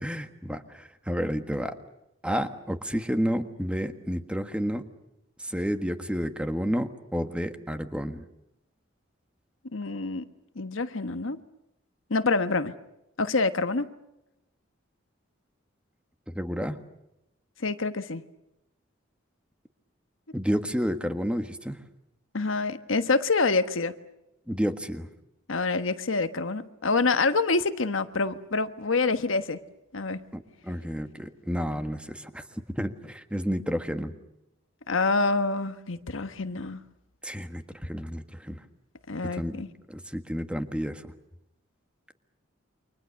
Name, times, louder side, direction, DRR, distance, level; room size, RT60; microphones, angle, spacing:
voice 1, 0.0-1.8 2.2-4.8 5.4-8.2 16.3-16.8 20.3-21.8 24.5-25.1 30.3-34.1 37.2-38.6 39.2-39.6 39.9-41.1, equal, 5° right, 1.5 m, -30 dB
voice 2, 9.7-10.3 10.5-11.4 12.1-12.7 13.2-13.9 17.6-18.2 22.3-23.9 25.5-29.6 29.9-30.2 34.9-36.8 39.1-39.7, left 3 dB, 85° left, 1.3 m, -26 dB
29.0 x 25.0 x 6.5 m
head